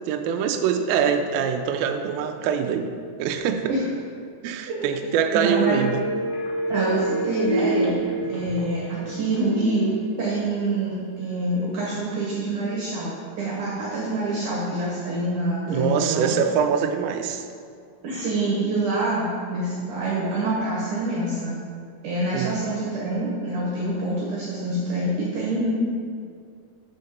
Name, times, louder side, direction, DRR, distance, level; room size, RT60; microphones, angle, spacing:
voice 1, 0.1-2.9 3.2-3.7 4.4-6.0 15.7-17.5 22.3-22.6, right 7 dB, 85° right, 5 dB, 2.1 m, -24 dB
sound 1, 5.3-11.0 11.3-11.4, right 1 dB, 45° left, 1.4 m, -28 dB
voice 2, 5.3-5.8 6.7-8.0 8.3-16.4 18.0-21.5 22.0-25.8, right 2 dB, 70° right, -6 dB, 2.1 m, -26 dB
5.7 x 5.3 x 6.6 m, 2.3 s
omnidirectional pair, 4.9 m